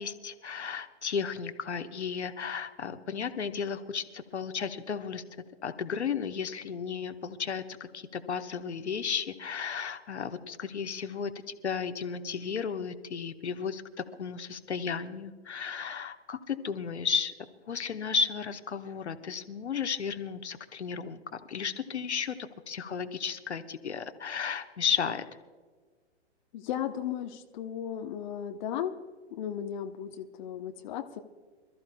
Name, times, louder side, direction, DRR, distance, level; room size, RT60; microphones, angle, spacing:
voice 1, 0.0-5.2 5.6-17.3 17.7-22.4 22.7-25.2, left 6 dB, 75° left, 8 dB, 1.1 m, -34 dB
voice 2, 26.5-28.9 29.3-31.2, left 9 dB, 40° left, 5 dB, 0.9 m, -35 dB
27.0 x 13.5 x 2.3 m, 1.5 s
figure-of-eight pair, 120°, 34 cm